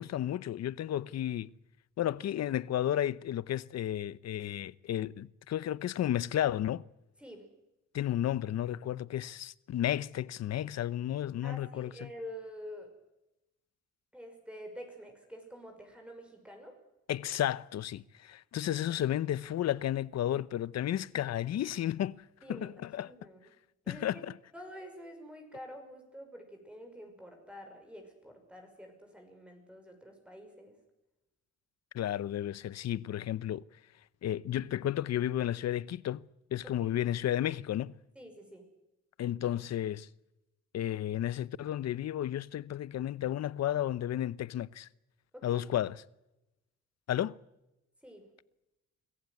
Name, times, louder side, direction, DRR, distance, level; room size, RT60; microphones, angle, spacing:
voice 1, 0.0-1.5 2.0-6.8 7.9-12.1 17.1-22.2 22.5-23.1 23.9-24.2 31.9-33.6 34.2-36.2 36.5-38.0 39.2-40.1 40.7-44.9 45.4-46.0 47.1-47.4, left 11 dB, 60° left, 0.8 m, -32 dB
voice 2, 11.4-12.9 14.1-16.8 22.4-22.7 23.0-23.5 23.8-24.2 24.5-30.8 36.8-36.9 38.2-38.7 45.3-45.7 48.0-48.2, equal, 5° right, 5.9 m, -48 dB
25.0 x 15.0 x 9.5 m
cardioid pair, 90°, 30 cm